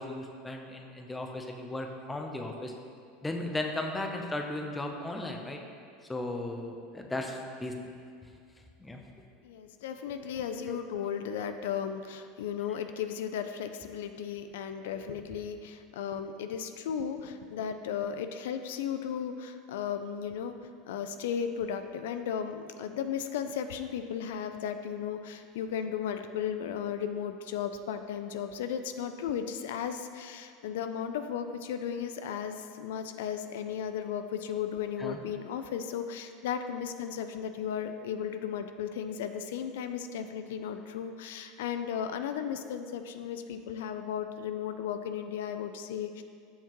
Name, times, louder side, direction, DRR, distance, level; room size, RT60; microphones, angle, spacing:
voice 1, 0.0-2.7 3.2-5.6 6.1-7.7 8.8-9.0 10.6-11.1 35.0-35.2, left 2 dB, 10° left, 3 dB, 0.6 m, -36 dB
voice 2, 9.4-46.2, left 8 dB, 85° left, 8 dB, 0.3 m, -35 dB
7.2 x 5.7 x 3.0 m, 2.2 s
supercardioid pair, 130°, 0 cm